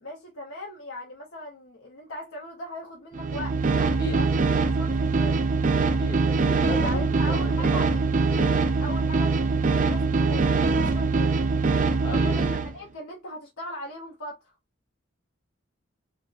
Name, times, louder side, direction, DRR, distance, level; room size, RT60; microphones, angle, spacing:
voice 1, 0.0-4.4 4.8-5.5 6.8-8.0 8.3-11.4 12.1-14.4, left 1 dB, 80° left, 0.7 m, -39 dB
sound 1, 3.1-12.7, right 4 dB, 40° right, 0.3 m, -23 dB
voice 2, 5.9-8.0 12.0-12.4, equal, 20° left, 0.8 m, -36 dB
3.4 x 2.0 x 2.4 m
head